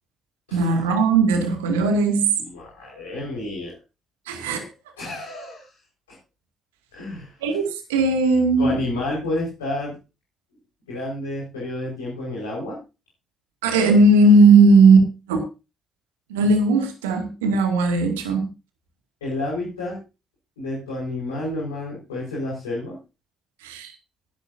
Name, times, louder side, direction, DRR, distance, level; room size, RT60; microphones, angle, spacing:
voice 1, 0.5-2.3 4.3-4.6 7.4-8.8 13.6-15.4 16.3-18.5 23.6-23.9, right 3 dB, 80° right, 4 dB, 2.3 m, -17 dB
voice 2, 2.4-3.7 5.0-5.7 6.9-7.3 8.6-9.9 10.9-12.8 19.2-20.0 20.6-23.0, left 1 dB, 85° left, -6 dB, 5.0 m, -30 dB
20.0 x 10.5 x 2.7 m, 0.29 s
figure-of-eight pair, 40°, 0 cm